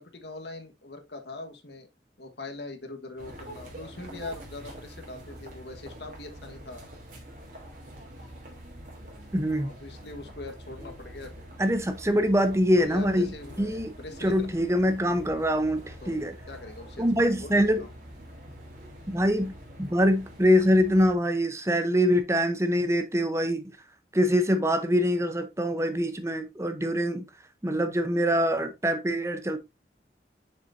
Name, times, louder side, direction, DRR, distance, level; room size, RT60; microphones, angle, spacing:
voice 1, 0.0-1.9 2.2-6.8 9.6-11.5 12.7-14.5 16.0-16.2 16.5-17.0 17.4-17.9, left 2 dB, 70° left, 1.5 m, -42 dB
sound 1, 3.2-21.1, equal, 50° right, 3.2 m, -45 dB
voice 2, 9.3-9.7 11.6-13.3 13.6-13.9 14.2-16.3 17.0-17.8 19.1-19.5 19.8-23.6 24.1-27.2 27.6-29.6, equal, 15° right, 0.8 m, -24 dB
7.2 x 6.7 x 2.7 m
head